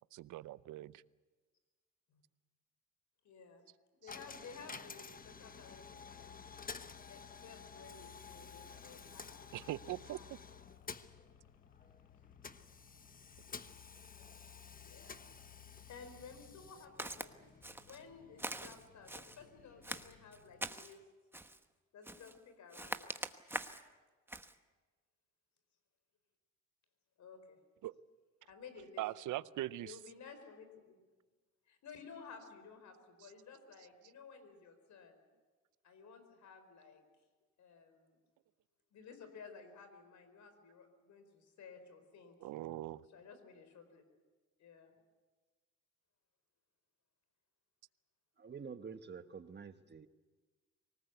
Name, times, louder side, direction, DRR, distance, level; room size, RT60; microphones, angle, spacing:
voice 1, 0.1-0.9 4.0-4.1 9.5-10.2 27.8-27.9 29.0-30.0 42.4-43.0, right 15 dB, 80° right, 18 dB, 0.7 m, -41 dB
voice 2, 3.2-3.6 4.0-6.5 7.1-10.3 14.8-15.2 15.9-21.0 21.9-23.2 27.2-27.6 28.4-29.1 29.3-29.5 29.8-31.0 31.7-35.2 35.8-37.0 37.6-38.2 38.9-42.4 43.1-44.0 44.6-44.9, left 5 dB, 70° left, 9 dB, 4.6 m, -55 dB
Coin (dropping), 4.1-21.0, left 5 dB, 30° left, 1.1 m, -53 dB
sound 1, 5.2-16.7, left 19 dB, 90° left, 0.9 m, -61 dB
Walk footsteps, 17.0-17.3 17.6-18.0 18.4-19.4 19.8-21.0 21.3-21.6 22.0-22.4 22.7-23.9 24.3-24.5, right 1 dB, 5° right, 1.1 m, -43 dB
voice 3, 48.4-50.1, right 6 dB, 35° right, 10 dB, 1.3 m, -48 dB
24.5 x 19.0 x 8.2 m, 1.3 s
cardioid pair, 90°, 30 cm